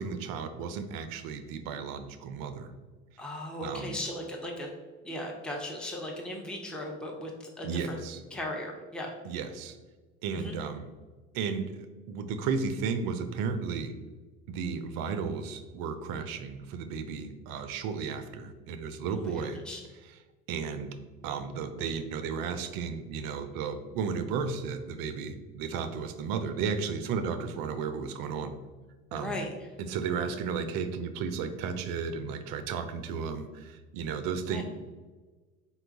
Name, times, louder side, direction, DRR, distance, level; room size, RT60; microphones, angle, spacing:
voice 1, 0.0-2.7 3.6-4.0 7.6-8.2 9.2-9.8 10.2-10.9 11.3-13.9 14.5-19.6 20.5-21.0 21.2-28.6 29.1-29.4 29.8-34.6, right 5 dB, 55° right, 10 dB, 0.6 m, -34 dB
voice 2, 3.2-4.7 5.0-8.0 8.3-9.1 10.3-10.5 19.1-19.8 29.1-29.5 34.5-34.6, left 1 dB, ahead, 0 dB, 0.6 m, -37 dB
4.1 x 2.3 x 3.9 m, 1.3 s
hypercardioid pair, 70°, 40 cm